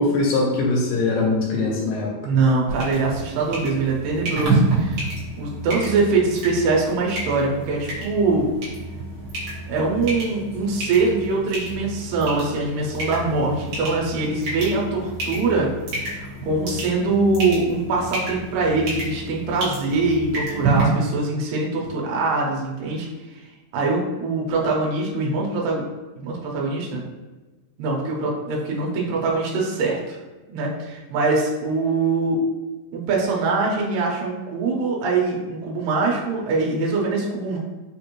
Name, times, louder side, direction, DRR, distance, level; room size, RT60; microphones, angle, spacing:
voice 1, 0.0-2.1, left 2 dB, 80° left, -2 dB, 2.3 m, -21 dB
voice 2, 2.2-5.0 5.4-8.5 9.7-15.7 16.1-23.1 23.7-25.8 26.2-27.1 27.8-30.2 30.5-32.4 32.9-37.6, right 3 dB, 80° right, -2 dB, 2.4 m, -23 dB
sound 1, 2.7-20.8, right 2 dB, 60° right, 1.9 m, -29 dB
5.6 x 2.5 x 3.0 m, 1.2 s
omnidirectional pair, 4.0 m